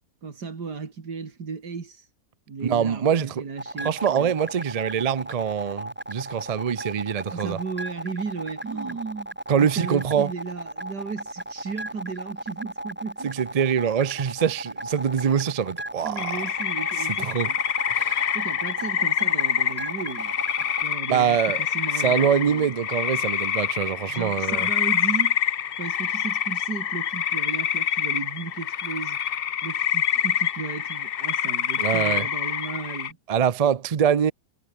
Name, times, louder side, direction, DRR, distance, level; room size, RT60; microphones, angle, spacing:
voice 1, 0.2-2.1 2.5-4.3 7.3-13.3 16.0-17.6 18.3-22.7 24.1-25.4 25.8-29.2 29.6-33.2, right 5 dB, 90° right, 3.1 m, -35 dB
voice 2, 2.6-3.4 3.8-7.6 9.5-10.3 13.2-16.4 17.2-17.5 17.9-18.2 21.1-21.6 22.0-24.7 31.8-32.3 33.3-34.3, right 8 dB, 60° right, 0.3 m, -24 dB
sound 1, 3.6-20.8, right 1 dB, 5° right, 1.2 m, -35 dB
sound 2, 16.2-33.1, left 9 dB, 55° left, 0.6 m, -26 dB
omnidirectional pair, 1.7 m